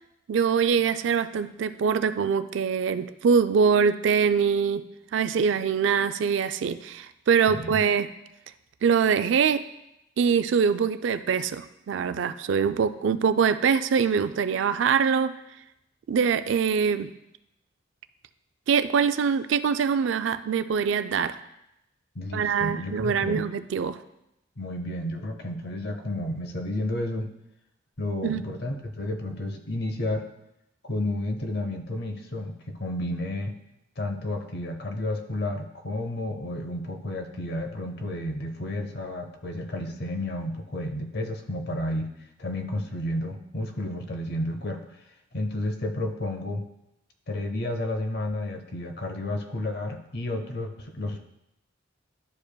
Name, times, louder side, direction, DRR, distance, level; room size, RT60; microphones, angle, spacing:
voice 1, 0.3-4.8 5.1-8.1 8.8-9.6 10.2-15.3 16.1-17.1 18.7-21.4 22.3-24.0 28.2-28.4, right 6 dB, 70° right, 11 dB, 0.3 m, -23 dB
voice 2, 7.5-7.8 22.1-23.5 24.6-27.3 28.0-30.3 30.8-33.5 34.0-42.1 42.4-44.9 45.3-46.7 47.3-51.2, left 1 dB, 55° left, 6 dB, 0.7 m, -31 dB
11.5 x 5.0 x 2.2 m, 0.85 s
head